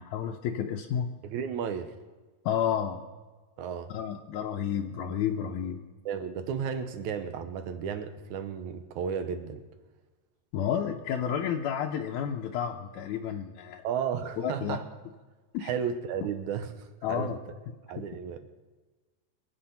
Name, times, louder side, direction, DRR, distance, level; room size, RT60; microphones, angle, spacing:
voice 1, 0.0-1.1 2.5-3.0 3.9-5.8 10.5-13.9 14.4-14.8 15.5-15.7 17.0-17.4, left 8 dB, 85° left, 2.2 m, -31 dB
voice 2, 1.2-1.9 3.6-3.9 6.1-9.6 13.8-14.9 15.6-17.4 17.9-18.5, right 7 dB, 85° right, 2.4 m, -33 dB
24.0 x 8.1 x 5.7 m
omnidirectional pair, 3.3 m